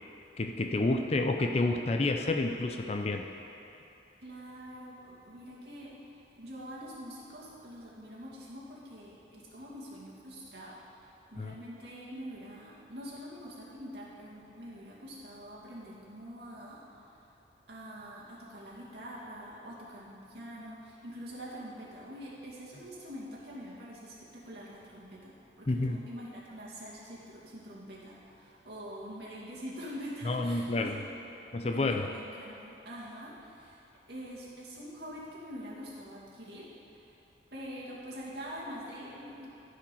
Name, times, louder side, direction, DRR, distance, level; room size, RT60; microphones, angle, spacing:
voice 1, 0.4-3.2 11.4-11.5 25.7-26.0 30.2-31.0 31.5-32.1, left 2 dB, 35° left, 4 dB, 0.5 m, -29 dB
voice 2, 4.2-11.0 11.3-17.1 17.7-31.3 31.7-36.7 36.9-37.1 37.5-39.6, equal, 60° right, -7 dB, 2.4 m, -45 dB
14.5 x 5.0 x 5.5 m, 2.9 s
head